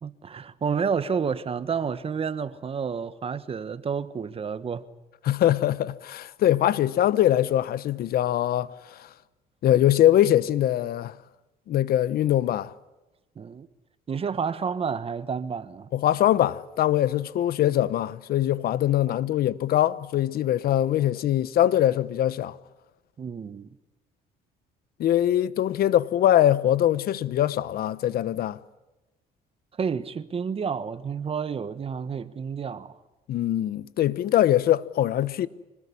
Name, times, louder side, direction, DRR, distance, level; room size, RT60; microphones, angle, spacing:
voice 1, 0.0-4.8 13.4-13.7 14.1-15.9 19.1-19.2 23.2-23.7 29.8-33.0, right 6 dB, 35° right, 1.3 m, -30 dB
voice 2, 5.2-9.1 9.6-11.1 11.7-12.7 15.9-22.6 25.0-28.6 33.3-35.5, left 12 dB, 65° left, 1.0 m, -22 dB
26.5 x 20.0 x 9.9 m
cardioid pair, 110°, 17 cm